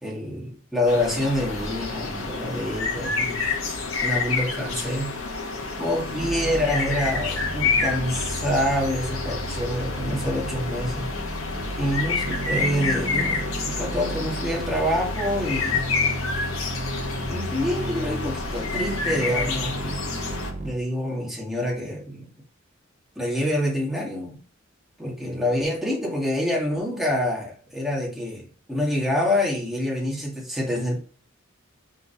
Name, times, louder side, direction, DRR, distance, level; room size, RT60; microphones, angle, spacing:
voice 1, 0.0-3.5 4.0-5.1 5.7-11.1 11.7-15.8 17.3-20.0 20.6-22.3 23.2-24.4 25.0-31.0, left 1 dB, ahead, -3 dB, 2.2 m, -26 dB
sound 1, 0.9-20.5, left 4 dB, 80° left, 1.6 m, -29 dB
sound 2, 6.2-20.7, right 1 dB, 35° right, 0.8 m, -33 dB
6.2 x 4.1 x 4.9 m, 0.42 s
head